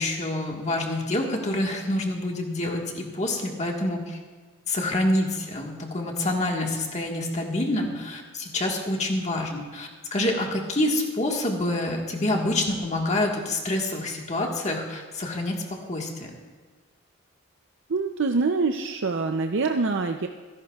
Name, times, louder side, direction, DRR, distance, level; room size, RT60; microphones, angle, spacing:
voice 1, 0.0-4.2 4.7-15.6 15.8-16.3, left 1 dB, 35° left, 0 dB, 1.6 m, -27 dB
voice 2, 17.9-20.3, right 4 dB, 60° right, 5 dB, 0.6 m, -25 dB
26.5 x 11.5 x 2.4 m, 1.5 s
head